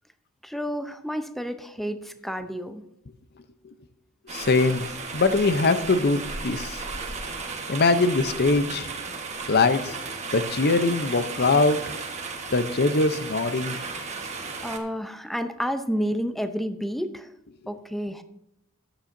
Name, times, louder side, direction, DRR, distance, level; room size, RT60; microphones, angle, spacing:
voice 1, 0.4-2.8 14.6-17.3 17.7-18.2, equal, ahead, 8 dB, 0.6 m, -30 dB
voice 2, 4.3-6.9 7.7-8.9 9.5-10.0 10.3-11.8 12.5-13.8, left 3 dB, 50° left, 11 dB, 0.7 m, -22 dB
sound 1, 4.3-14.8, right 4 dB, 35° right, 1.3 m, -34 dB
14.0 x 10.0 x 2.7 m, 0.84 s
head